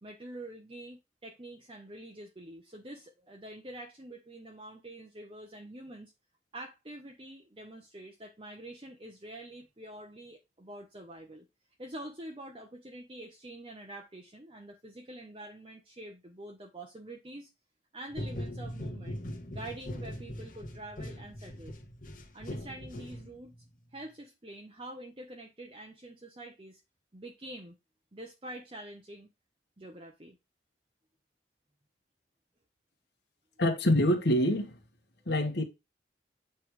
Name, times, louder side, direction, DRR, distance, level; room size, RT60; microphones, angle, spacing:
voice 1, 0.0-6.1 6.5-11.5 11.8-17.5 17.9-19.2 19.5-21.8 22.3-23.6 23.9-26.8 27.1-27.8 28.1-29.3 29.8-30.4, right 1 dB, 30° right, 0.9 m, -46 dB
sound 1, 18.1-23.6, equal, 45° left, 1.3 m, -41 dB
voice 2, 33.6-34.8 35.3-35.6, left 1 dB, 70° left, 1.3 m, -25 dB
8.0 x 3.4 x 4.7 m
head